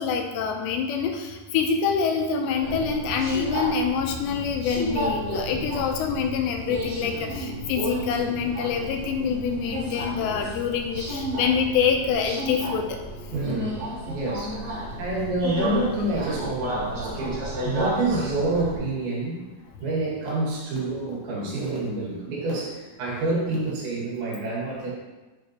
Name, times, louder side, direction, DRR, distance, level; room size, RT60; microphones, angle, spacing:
voice 1, 0.0-13.0, left 6 dB, 80° left, 3 dB, 2.8 m, -26 dB
Subway metro underground, 2.6-18.8, equal, 40° right, 3.0 m, -32 dB
voice 2, 13.3-13.7 14.1-19.5 19.8-24.9, right 2 dB, 75° right, -5 dB, 4.5 m, -28 dB
12.0 x 5.5 x 3.0 m, 1.2 s
omnidirectional pair, 5.2 m